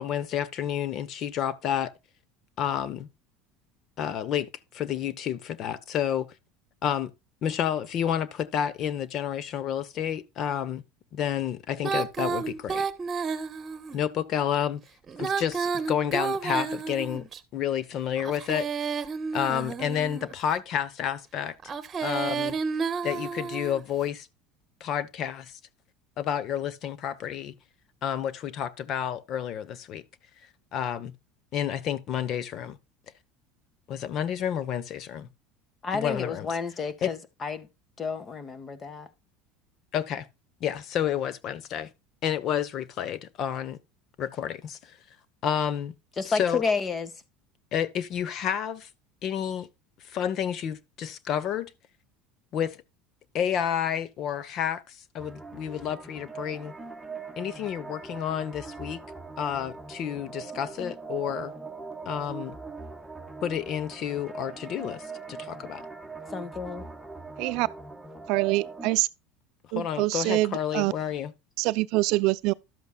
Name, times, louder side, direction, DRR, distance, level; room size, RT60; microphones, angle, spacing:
voice 1, 0.0-1.9 2.6-3.1 4.0-6.3 6.8-7.1 7.4-10.8 11.1-12.8 13.9-14.8 15.2-17.2 17.5-18.7 19.3-21.6 22.0-22.6 23.0-24.3 24.8-25.6 26.2-27.5 28.0-30.0 30.7-31.1 31.5-32.8 33.9-35.3 35.9-36.5 37.0-37.1 39.9-40.3 40.6-41.9 42.2-43.8 44.2-45.0 45.4-45.9 46.3-46.6 47.7-48.9 49.2-49.7 50.0-51.7 52.5-52.8 53.3-56.7 57.4-59.0 59.4-61.5 62.1-62.6 63.4-65.9 69.7-71.3, left 9 dB, 50° left, 1.0 m, -30 dB
Female singing, 11.8-14.0 15.1-17.4 18.2-20.3 21.6-23.8, right 5 dB, 30° right, 1.3 m, -31 dB
voice 2, 35.8-37.7 38.0-39.1 46.2-47.1 66.3-66.9, left 5 dB, 30° left, 1.6 m, -30 dB
sound 1, 55.2-69.0, right 4 dB, 5° right, 1.4 m, -41 dB
voice 3, 68.3-69.1 69.7-70.9 71.6-72.5, right 20 dB, 65° right, 0.5 m, -25 dB
12.5 x 8.1 x 2.3 m
supercardioid pair, 110°, 0 cm